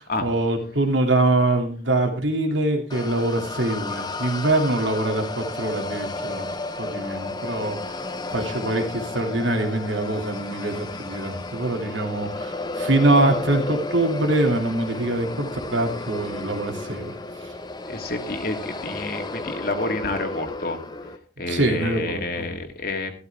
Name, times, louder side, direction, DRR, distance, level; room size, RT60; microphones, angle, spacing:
voice 1, 0.0-6.5 6.8-8.0 8.3-17.1 21.5-22.5, right 2 dB, 85° right, 4 dB, 2.9 m, -24 dB
sound 1, 2.9-21.2, left 2 dB, 20° left, 0.9 m, -33 dB
voice 2, 17.9-20.8 21.4-23.1, left 2 dB, 50° left, 4 dB, 1.9 m, -29 dB
14.0 x 12.5 x 3.6 m, 0.38 s
head